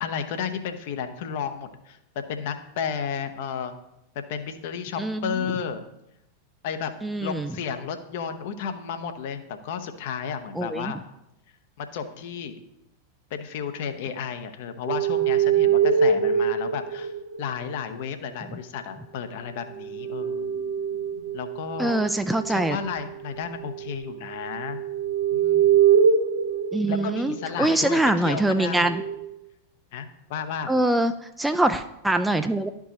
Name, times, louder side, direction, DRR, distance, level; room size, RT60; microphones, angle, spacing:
voice 1, 0.0-2.0 2.3-3.7 4.1-5.8 6.6-6.9 7.2-11.0 11.8-12.6 13.3-17.1 17.4-20.6 21.3-22.0 22.5-24.8 25.3-25.8 26.9-28.9 29.9-30.7, left 7 dB, 50° left, 8 dB, 0.7 m, -33 dB
voice 2, 5.0-5.3 7.0-7.5 10.6-10.9 21.8-22.8 26.7-29.0 30.7-31.1 31.4-32.7, right 1 dB, 5° right, 8 dB, 0.4 m, -23 dB
sound 1, 14.9-17.7 19.7-27.4 28.8-29.2, right 7 dB, 65° right, 0.7 m, -24 dB
12.0 x 4.6 x 2.9 m, 0.85 s
figure-of-eight pair, 90°, 0 cm